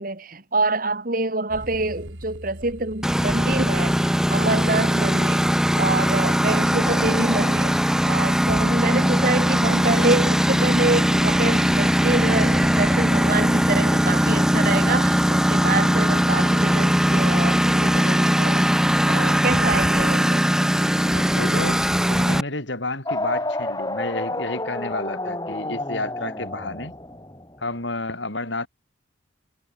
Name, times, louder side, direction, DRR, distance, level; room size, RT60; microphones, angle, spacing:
voice 1, 0.0-7.8 8.1-18.8 19.1-20.5, right 2 dB, 45° right, 2.2 m, -26 dB
sound 1, 1.5-18.0, right 1 dB, 70° right, 3.8 m, -39 dB
Engine, 3.0-22.4, equal, 5° right, 1.3 m, -20 dB
voice 2, 21.1-26.9 27.6-28.7, left 2 dB, 65° left, 5.0 m, -30 dB
sound 2, 23.0-27.6, left 2 dB, 20° left, 4.6 m, -30 dB
head